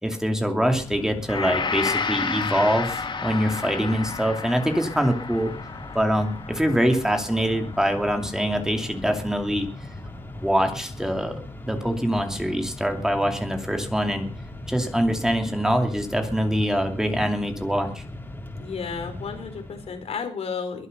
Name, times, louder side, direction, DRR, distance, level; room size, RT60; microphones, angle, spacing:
voice 1, 0.0-5.5 5.9-9.7 10.4-11.4 11.6-14.3 14.7-18.0, equal, 5° right, 4 dB, 2.6 m, -24 dB
Mechanisms, 0.7-20.2, left 1 dB, 20° left, 3.9 m, -39 dB
Gong, 1.3-9.7 10.1-10.2, left 5 dB, 45° left, 1.8 m, -32 dB
voice 2, 18.6-20.9, left 5 dB, 70° left, 6 dB, 4.4 m, -32 dB
22.5 x 8.1 x 6.6 m, 0.43 s
cardioid pair, 85°, 11 cm